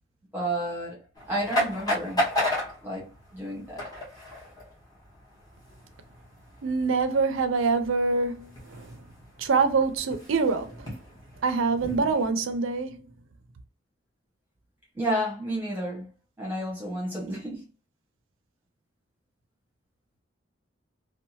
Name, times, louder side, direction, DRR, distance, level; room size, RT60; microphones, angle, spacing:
voice 1, 0.3-2.2 2.8-3.8 14.9-16.1 16.4-17.6, right 1 dB, 10° right, 1.0 m, -31 dB
sound 1, 1.1-12.3, left 1 dB, 20° left, 1.0 m, -34 dB
voice 2, 6.6-8.9 9.4-10.8 11.4-13.0, right 4 dB, 85° right, 0.5 m, -25 dB
2.7 x 2.1 x 2.7 m
head